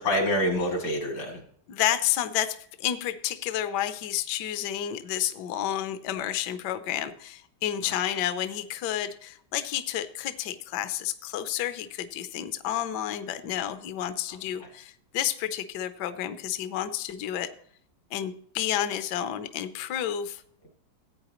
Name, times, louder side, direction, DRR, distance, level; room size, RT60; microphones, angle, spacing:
voice 1, 0.0-1.4 7.8-8.1 14.3-14.7, left 1 dB, 80° left, 1 dB, 3.5 m, -28 dB
voice 2, 1.7-17.5 18.1-20.4, left 11 dB, 65° left, 10 dB, 1.2 m, -30 dB
15.5 x 8.9 x 3.0 m, 0.63 s
omnidirectional pair, 2.2 m